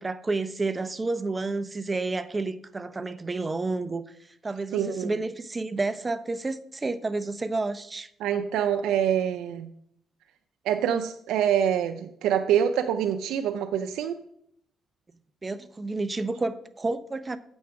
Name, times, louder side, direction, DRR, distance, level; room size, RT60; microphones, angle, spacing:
voice 1, 0.0-4.0 4.4-8.1 15.4-17.4, right 3 dB, 25° right, 12 dB, 0.6 m, -30 dB
voice 2, 4.7-5.1 8.2-9.7 10.6-14.2, right 9 dB, 85° right, 5 dB, 0.5 m, -25 dB
8.3 x 6.3 x 4.7 m, 0.69 s
cardioid pair, 90°, 0 cm